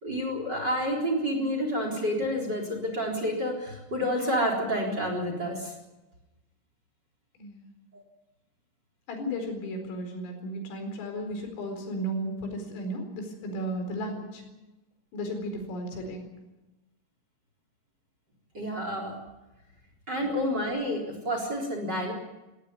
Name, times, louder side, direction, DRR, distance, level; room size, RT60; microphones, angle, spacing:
voice 1, 0.0-5.7 7.9-8.0 18.5-19.2 20.1-22.1, equal, 25° right, 4 dB, 3.8 m, -29 dB
voice 2, 7.4-7.7 9.1-14.4 15.1-16.3 20.2-20.3, equal, 75° left, 5 dB, 7.0 m, -34 dB
18.5 x 17.5 x 9.6 m, 1.0 s
omnidirectional pair, 5.9 m